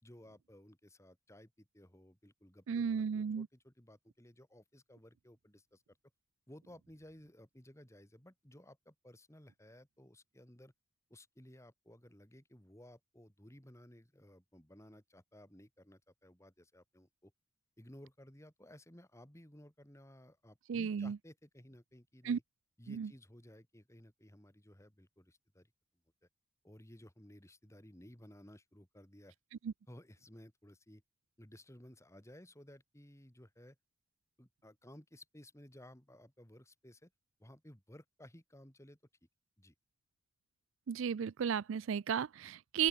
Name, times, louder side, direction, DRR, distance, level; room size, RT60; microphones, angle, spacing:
voice 1, 0.0-6.0 6.5-10.7 11.1-17.3 17.8-22.4 22.8-25.7 26.6-29.3 29.9-31.0 31.4-33.8 34.4-37.1 37.4-39.0 39.6-39.7, left 1 dB, 15° left, 3.2 m, -57 dB
voice 2, 2.7-3.5 20.7-21.2 22.2-22.4 22.9-23.1 29.6-29.7 40.9-42.9, right 7 dB, 70° right, 0.4 m, -34 dB
open air
head